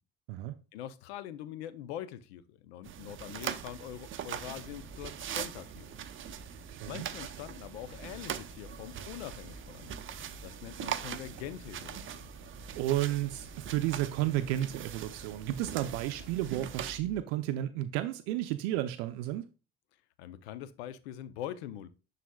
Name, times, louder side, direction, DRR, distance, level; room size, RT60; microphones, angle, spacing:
voice 1, 0.7-6.0 6.8-10.2 10.4-12.2 20.2-21.9, left 11 dB, 90° left, 0.7 m, -43 dB
sound 1, 2.8-17.0, right 9 dB, 40° right, 0.7 m, -42 dB
sound 2, 4.4-17.2, left 2 dB, 25° left, 3.5 m, -53 dB
voice 2, 6.7-7.1 12.8-19.5, right 13 dB, 80° right, 0.6 m, -32 dB
11.5 x 4.1 x 2.3 m
supercardioid pair, 80°, 31 cm